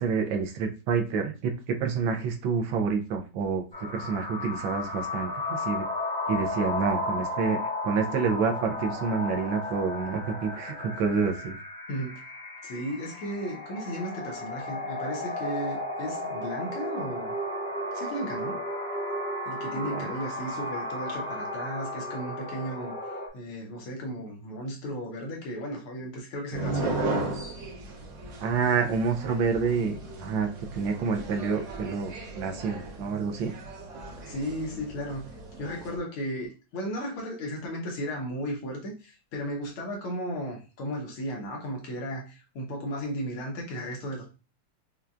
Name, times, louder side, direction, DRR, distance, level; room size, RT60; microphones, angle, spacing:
voice 1, 0.0-3.6 3.9-5.8 6.3-11.6 19.8-20.1 28.4-33.5, right 5 dB, 75° right, 4 dB, 1.4 m, -28 dB
sound 1, 3.7-23.3, left 1 dB, 5° left, 0.6 m, -34 dB
voice 2, 11.9-12.2 12.6-17.3 17.9-18.6 19.5-23.0 23.3-27.2 34.3-44.3, equal, 85° left, 0 dB, 1.9 m, -35 dB
sound 2, 26.5-36.0, right 2 dB, 55° right, 0.8 m, -36 dB
5.6 x 2.3 x 2.4 m, 0.32 s
omnidirectional pair, 2.3 m